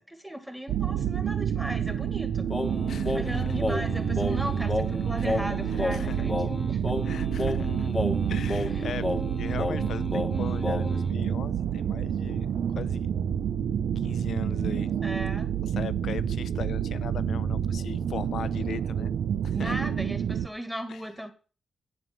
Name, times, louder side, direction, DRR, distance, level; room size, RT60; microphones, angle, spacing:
voice 1, 0.0-2.5 3.1-6.8 8.7-9.0 15.0-15.5 19.5-21.3, equal, 5° right, 2.0 m, -37 dB
sound 1, 0.7-20.5, right 9 dB, 80° right, 0.7 m, -28 dB
Singing, 2.5-11.1, left 2 dB, 20° left, 1.2 m, -32 dB
voice 2, 2.9-3.5 5.2-5.5 5.9-6.3 7.0-7.9 8.3-9.1 9.4-12.5 12.7-13.1 14.0-15.0 15.7-19.1 19.4-19.8 20.9-21.0, left 8 dB, 70° left, 0.6 m, -39 dB
9.5 x 5.5 x 7.7 m
cardioid pair, 90°, 0 cm